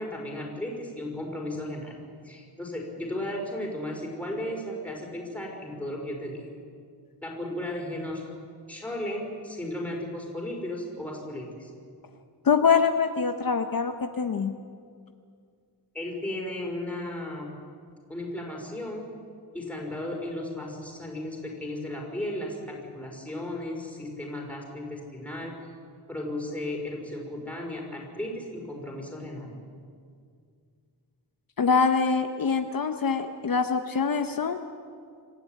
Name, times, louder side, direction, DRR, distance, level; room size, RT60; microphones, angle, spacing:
voice 1, 0.0-1.9 2.2-6.5 7.2-8.3 8.7-11.7 15.9-17.5 18.1-19.1 19.5-25.5 26.1-29.6, left 1 dB, 5° left, -1 dB, 4.7 m, -35 dB
voice 2, 12.4-14.5 31.6-34.6, left 5 dB, 50° left, 6 dB, 0.9 m, -24 dB
26.0 x 13.5 x 9.2 m, 2.2 s
wide cardioid pair, 175°, 43 cm